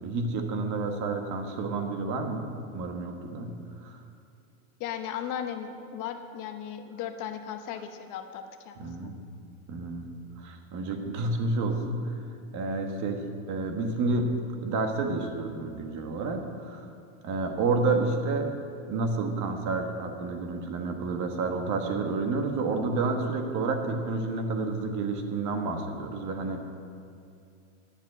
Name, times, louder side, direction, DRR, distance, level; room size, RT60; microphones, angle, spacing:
voice 1, 0.0-3.5 3.8-4.0 8.8-9.1 9.7-10.1 10.4-12.1 12.5-13.2 13.5-14.3 14.6-16.9 17.2-18.5 18.9-26.6, right 3 dB, 45° right, 4 dB, 1.5 m, -30 dB
voice 2, 4.8-9.1, left 9 dB, 45° left, 7 dB, 0.9 m, -36 dB
10.0 x 7.3 x 7.4 m, 2.4 s
supercardioid pair, 120°, 42 cm